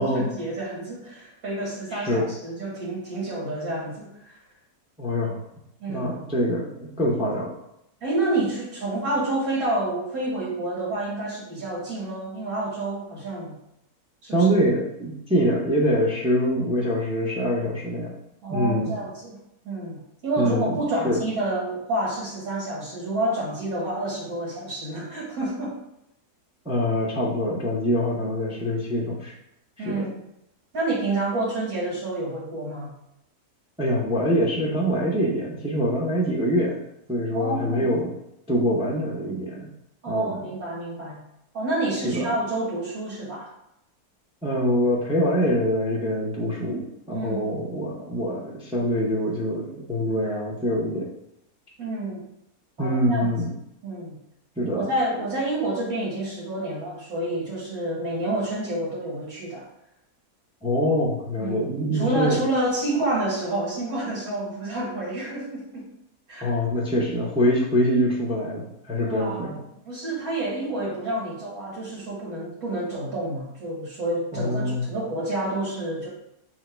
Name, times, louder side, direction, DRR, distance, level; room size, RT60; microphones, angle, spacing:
voice 1, 0.0-4.3 5.8-6.1 8.0-13.5 14.2-14.5 18.4-19.4 19.6-20.0 20.2-25.7 29.8-30.2 30.7-32.9 37.3-37.9 40.0-41.2 41.5-43.5 47.1-47.5 51.8-52.2 52.8-53.3 53.8-54.1 54.8-59.7 61.4-65.9 66.3-66.5 69.0-69.6 69.9-76.1, right 1 dB, 65° right, -5 dB, 2.0 m, -29 dB
voice 2, 1.9-2.3 5.0-5.4 5.9-7.5 14.3-18.1 18.5-19.0 20.4-20.7 21.0-21.2 26.6-29.3 29.8-29.9 33.8-36.8 37.1-38.1 38.5-39.7 40.1-40.4 42.0-42.3 44.4-46.8 47.1-51.1 52.8-53.5 54.6-54.9 60.6-62.4 66.4-69.6 74.3-74.9, equal, 10° right, -3 dB, 0.3 m, -24 dB
4.6 x 2.1 x 4.4 m, 0.83 s
omnidirectional pair, 1.6 m